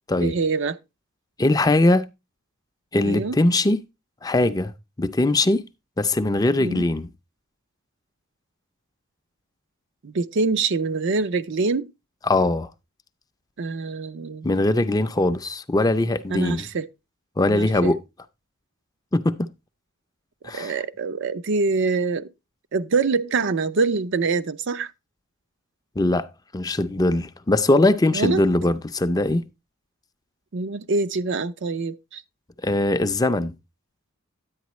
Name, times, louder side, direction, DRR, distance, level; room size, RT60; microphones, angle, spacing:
voice 1, 0.2-0.8 3.0-3.4 6.6-6.9 10.0-11.9 13.6-14.5 16.3-16.9 17.5-17.9 20.5-22.3 22.7-24.9 28.1-28.4 30.5-32.2, right 4 dB, 60° right, 0.5 m, -25 dB
voice 2, 1.4-2.0 2.9-3.8 4.2-4.7 5.0-5.6 6.0-7.1 12.2-12.7 14.4-16.7 17.4-18.0 19.1-19.4 20.4-20.8 26.0-26.3 26.5-29.4 32.6-33.5, left 2 dB, 20° left, 0.5 m, -21 dB
10.5 x 8.7 x 3.1 m
head